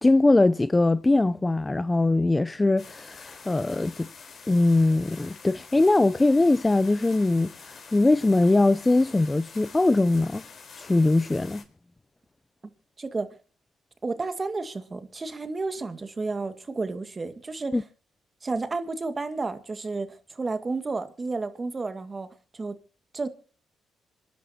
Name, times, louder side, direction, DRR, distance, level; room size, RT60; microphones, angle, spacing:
voice 1, 0.0-4.1 4.5-10.4 10.8-11.6 17.7-17.8, left 2 dB, 20° left, 0.6 m, -21 dB
Water Fountain Sound, 2.8-11.6, left 5 dB, 55° left, 4.2 m, -47 dB
voice 2, 14.0-17.8 18.4-22.3 22.5-22.8 23.1-23.3, right 3 dB, 35° right, 2.0 m, -31 dB
26.5 x 11.0 x 2.9 m
hypercardioid pair, 50°, 0 cm